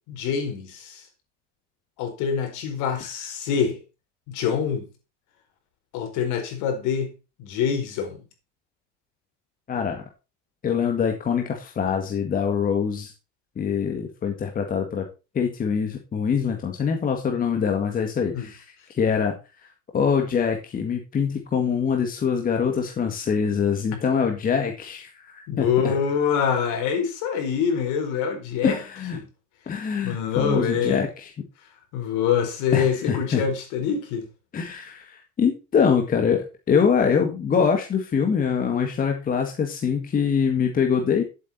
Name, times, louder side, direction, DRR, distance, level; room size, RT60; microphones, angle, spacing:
voice 1, 0.1-1.1 2.0-3.8 4.3-4.9 5.9-7.1 7.4-8.2 18.3-18.5 25.5-28.8 29.1-29.2 30.0-31.0 31.9-34.3, left 7 dB, 55° left, 4.6 m, -25 dB
voice 2, 9.7-10.0 10.6-13.1 13.6-15.1 15.3-18.6 18.9-19.3 19.9-25.9 28.6-29.2 29.7-31.3 32.7-33.4 34.5-41.2, left 6 dB, 25° left, 1.9 m, -24 dB
11.0 x 8.4 x 4.3 m
supercardioid pair, 140°, 36 cm